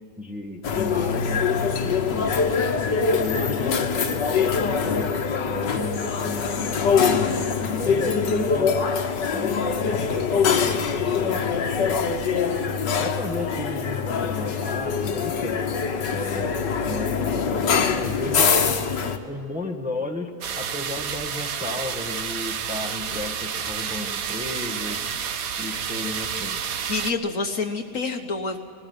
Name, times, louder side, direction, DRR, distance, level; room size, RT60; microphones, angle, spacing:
voice 1, 0.2-1.4 1.8-2.3 3.2-5.1 5.5-7.3 7.6-8.7 9.3-10.2 11.2-11.7 13.0-15.6 16.1-17.6 18.0-18.5 19.2-20.3 20.6-25.0 25.6-26.6, left 2 dB, 5° right, 3 dB, 1.3 m, -34 dB
sound 1, 0.6-19.2, left 6 dB, 85° left, 1.9 m, -23 dB
sound 2, 20.4-27.1, right 7 dB, 60° right, 1.2 m, -30 dB
voice 2, 26.9-28.6, left 4 dB, 50° left, 5 dB, 1.4 m, -28 dB
20.5 x 14.0 x 9.5 m, 2.6 s
omnidirectional pair, 1.8 m